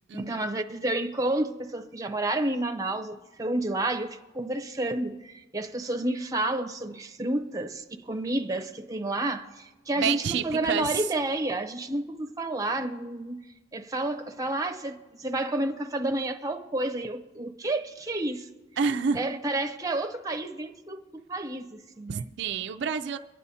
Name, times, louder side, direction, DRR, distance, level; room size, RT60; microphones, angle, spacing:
voice 1, 0.1-13.4 13.7-18.5 19.1-22.3, right 2 dB, 15° right, 0.6 m, -30 dB
voice 2, 10.0-11.1 18.8-19.2 22.1-23.2, right 6 dB, 55° right, 0.3 m, -28 dB
24.0 x 9.9 x 2.8 m
head